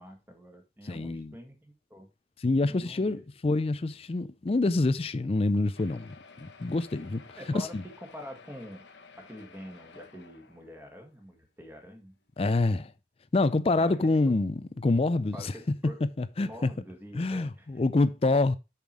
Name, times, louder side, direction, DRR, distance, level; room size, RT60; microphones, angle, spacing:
voice 1, 0.0-2.1 2.7-3.2 7.4-8.9 9.2-12.2 13.7-14.3 15.3-16.0 16.4-17.7, equal, 10° right, 1.8 m, -45 dB
voice 2, 0.8-1.3 2.4-7.2 7.5-7.8 12.4-12.9 13.3-15.5 16.2-16.7 17.1-18.6, left 2 dB, 35° left, 0.4 m, -26 dB
sound 1, 5.7-11.2 11.9-12.0 12.2-12.3 12.7-12.8, left 4 dB, 80° left, 1.1 m, -53 dB
7.1 x 5.9 x 4.7 m
head